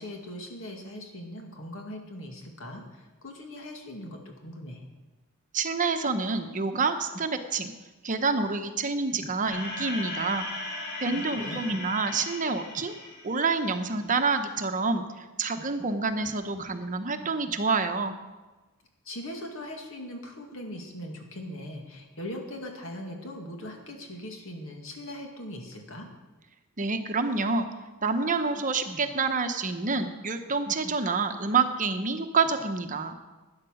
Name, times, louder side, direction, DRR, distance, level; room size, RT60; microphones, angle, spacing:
voice 1, 0.0-4.8 11.0-11.8 19.0-26.1, left 1 dB, 65° left, 2 dB, 2.2 m, -40 dB
voice 2, 5.5-7.7 8.0-10.5 11.0-12.9 13.2-18.1 26.8-27.7 28.0-33.2, right 4 dB, 35° right, 7 dB, 0.9 m, -28 dB
sound 1, 9.5-13.9, left 2 dB, 50° left, 2.7 m, -37 dB
12.5 x 9.7 x 6.4 m, 1.2 s
head